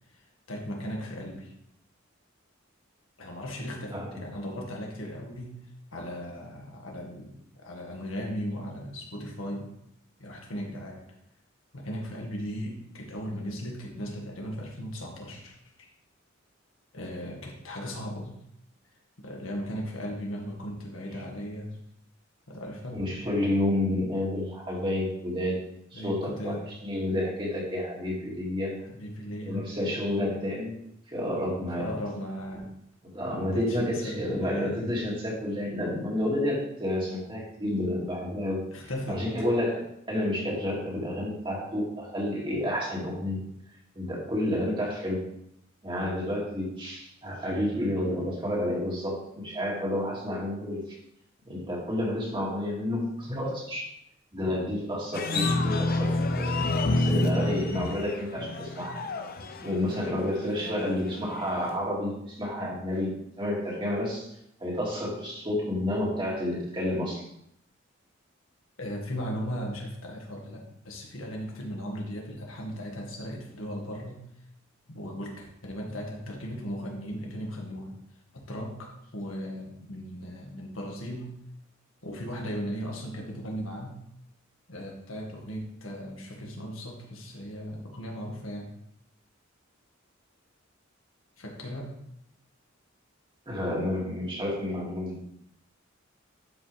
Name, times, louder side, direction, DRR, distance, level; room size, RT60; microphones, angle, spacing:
voice 1, 0.5-1.5 3.2-5.6 5.9-9.7 10.2-11.0 11.7-15.9 16.9-18.4 19.2-21.8 22.5-23.1 25.9-26.7 28.8-30.0 31.8-32.7 33.3-34.9 38.7-39.3 68.8-74.3 74.9-77.9 78.3-81.4 82.0-84.0 84.7-88.7 91.4-91.9, equal, 80° left, 0 dB, 1.9 m, -37 dB
voice 2, 3.9-4.2 22.9-25.6 25.9-26.6 26.8-28.8 29.4-30.8 31.1-31.9 33.0-38.6 39.1-43.4 44.0-45.2 45.8-51.0 51.5-53.9 54.3-56.6 56.9-59.0 59.6-64.3 64.6-67.3 93.5-95.2, left 1 dB, 25° right, -3 dB, 2.5 m, -30 dB
sound 1, 55.1-61.8, left 2 dB, 50° left, 0.8 m, -29 dB
11.5 x 5.3 x 3.5 m, 0.75 s
head